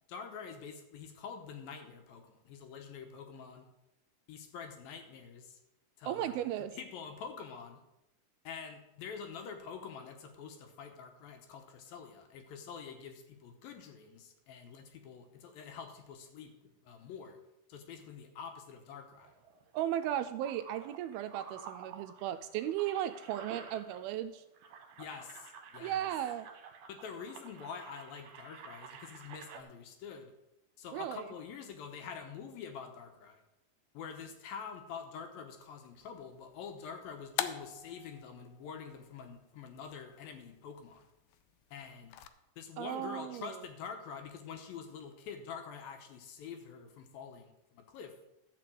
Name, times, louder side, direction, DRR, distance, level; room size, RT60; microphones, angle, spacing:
voice 1, 0.1-3.7 4.3-5.6 6.0-6.5 6.7-7.8 8.4-16.5 16.8-17.4 17.7-19.3 25.0-26.1 26.9-30.3 30.8-33.4 33.9-41.1 41.7-42.2 42.6-48.1, left 6 dB, 75° left, 5 dB, 2.6 m, -46 dB
voice 2, 6.1-6.7 19.7-24.4 25.8-26.5 30.9-31.2 42.8-43.5, right 11 dB, 85° right, 9 dB, 2.3 m, -36 dB
sound 1, 19.2-24.3 24.5-29.6, right 6 dB, 65° right, 2.4 m, -51 dB
sound 2, 35.9-42.3, left 11 dB, 90° left, 2.0 m, -45 dB
12.5 x 5.0 x 7.6 m, 0.92 s
omnidirectional pair, 4.6 m